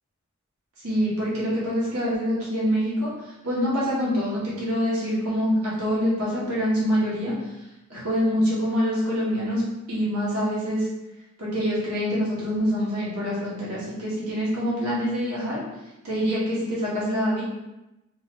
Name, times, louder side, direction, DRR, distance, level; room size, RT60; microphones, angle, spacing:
voice 1, 0.8-7.5 7.9-9.6 9.9-10.9 11.4-15.6 16.0-17.4, equal, 85° right, -7 dB, 1.4 m, -25 dB
5.3 x 2.6 x 3.0 m, 0.95 s
head